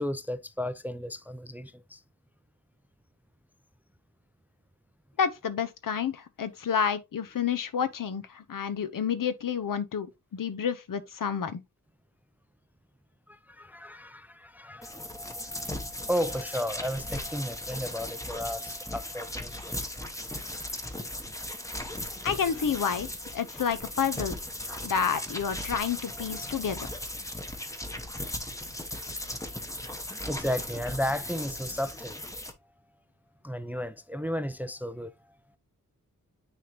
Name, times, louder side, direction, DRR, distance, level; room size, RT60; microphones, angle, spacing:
voice 1, 0.0-2.0 13.3-19.8 24.7-24.9 26.1-26.9 30.2-32.2 33.4-35.1, equal, 5° right, 0.4 m, -34 dB
voice 2, 5.2-11.6 22.2-24.4 24.8-26.8, left 7 dB, 80° left, 0.9 m, -29 dB
sound 1, 14.8-32.5, left 1 dB, 10° left, 0.8 m, -37 dB
9.2 x 3.5 x 2.9 m
wide cardioid pair, 140°, 32 cm